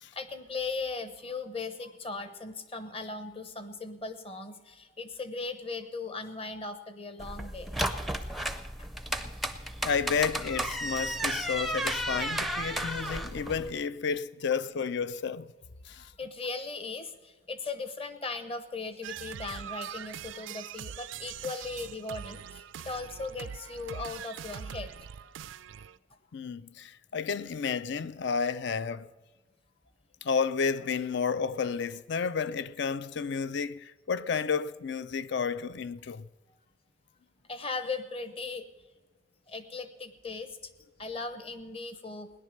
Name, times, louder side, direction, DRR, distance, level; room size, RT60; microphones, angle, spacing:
voice 1, 0.1-7.7 8.8-8.9 16.0-25.0 37.5-38.7 39.5-40.6 41.0-42.3, left 3 dB, 30° left, 0.9 m, -38 dB
sound 1, 7.2-13.7, right 1 dB, ahead, 0.5 m, -33 dB
voice 2, 9.8-15.5 15.9-16.1 26.3-29.1 30.2-36.3, left 6 dB, 60° left, 0.4 m, -31 dB
sound 2, 19.0-26.0, right 8 dB, 70° right, 0.4 m, -42 dB
17.0 x 10.5 x 6.5 m
head